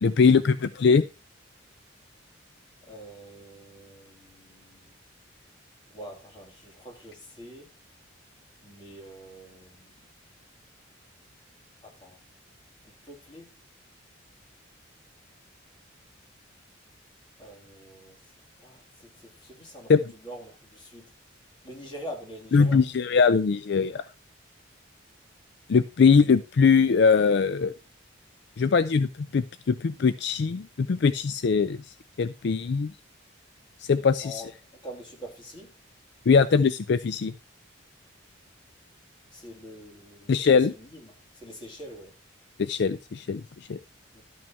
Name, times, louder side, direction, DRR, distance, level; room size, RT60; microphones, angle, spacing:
voice 1, 0.0-1.0 19.9-20.0 22.5-24.1 25.7-27.7 28.6-32.9 33.8-34.4 36.3-37.3 40.3-40.7 42.6-43.4 43.7-43.8, left 5 dB, 60° left, 0.4 m, -21 dB
voice 2, 2.8-4.9 5.9-7.7 8.6-9.9 11.8-12.2 12.8-13.5 17.4-18.2 18.6-21.1 21.6-22.8 34.2-34.5 34.8-35.7 39.3-42.1 44.1-44.2, equal, 25° left, 3.2 m, -45 dB
12.0 x 6.2 x 4.4 m
head